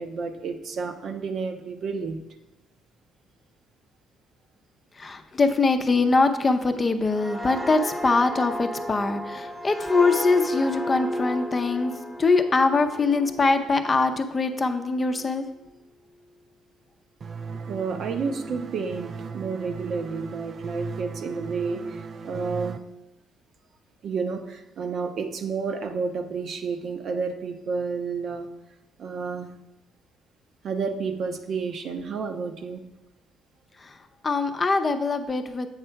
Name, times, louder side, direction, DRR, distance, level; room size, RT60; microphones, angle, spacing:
voice 1, 0.0-2.2 17.7-22.8 24.0-28.5 29.0-29.5 30.6-32.9, right 5 dB, 60° right, 6 dB, 0.7 m, -30 dB
voice 2, 5.0-11.9 12.2-15.4 34.2-35.7, left 3 dB, 30° left, 7 dB, 0.6 m, -23 dB
sound 1, 7.1-14.5 14.9-15.2, equal, 5° right, 0.9 m, -33 dB
sound 2, 17.2-22.8, right 5 dB, 45° right, 0.4 m, -37 dB
8.0 x 3.4 x 5.7 m, 0.92 s
cardioid pair, 90°, 0 cm